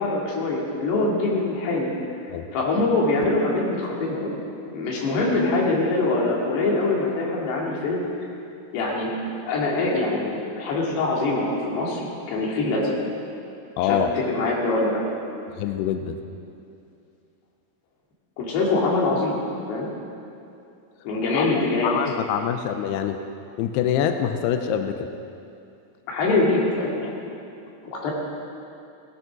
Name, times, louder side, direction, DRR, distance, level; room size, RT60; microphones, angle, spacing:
voice 1, 0.0-1.9 2.5-4.4 4.7-8.0 8.7-9.1 9.4-13.0 13.8-15.0 18.4-19.4 19.7-19.9 21.1-21.9 26.1-27.3 27.8-28.1, left 2 dB, 65° left, -3 dB, 4.1 m, -24 dB
voice 2, 13.8-14.1 15.6-16.2 21.3-23.2 23.6-25.1, left 9 dB, 85° left, 7 dB, 2.4 m, -25 dB
17.5 x 10.0 x 6.0 m, 2.6 s
omnidirectional pair, 5.3 m